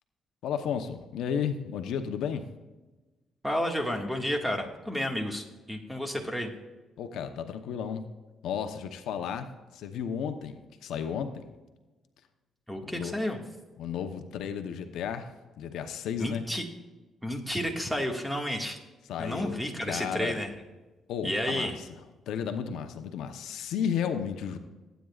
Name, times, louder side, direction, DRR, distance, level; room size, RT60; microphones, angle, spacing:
voice 1, 0.4-2.5 7.0-8.1 8.4-11.5 12.8-13.1 13.8-16.5 19.1-20.4 21.1-22.0 22.3-24.6, left 7 dB, 80° left, 7 dB, 0.9 m, -33 dB
voice 2, 3.4-6.5 12.7-13.4 16.2-16.6 17.2-18.8 19.2-20.5 21.2-21.8, equal, 5° right, 3 dB, 1.9 m, -31 dB
17.5 x 9.1 x 2.4 m, 1.2 s
cardioid pair, 90°, 0 cm